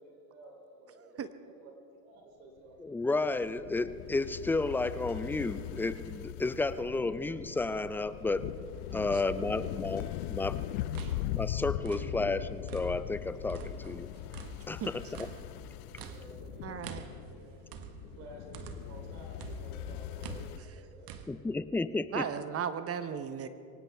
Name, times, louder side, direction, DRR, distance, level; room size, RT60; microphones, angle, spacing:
voice 1, 0.0-1.8 2.0-2.8 15.9-17.6 18.0-21.5, right 2 dB, 75° right, 1 dB, 3.4 m, -53 dB
voice 2, 2.8-8.5 8.9-10.6 11.3-14.1 14.7-15.3 21.3-22.3, left 3 dB, 5° left, 13 dB, 0.4 m, -32 dB
sound 1, 3.0-20.6, left 14 dB, 75° left, 0.6 m, -40 dB
sound 2, 10.7-13.2 13.5-19.1 19.4-21.3, right 6 dB, 50° right, 1.4 m, -46 dB
voice 3, 16.6-17.0 22.1-23.5, right 8 dB, 35° right, 11 dB, 0.8 m, -36 dB
23.0 x 18.0 x 3.5 m, 2.8 s
hypercardioid pair, 90°, 43 cm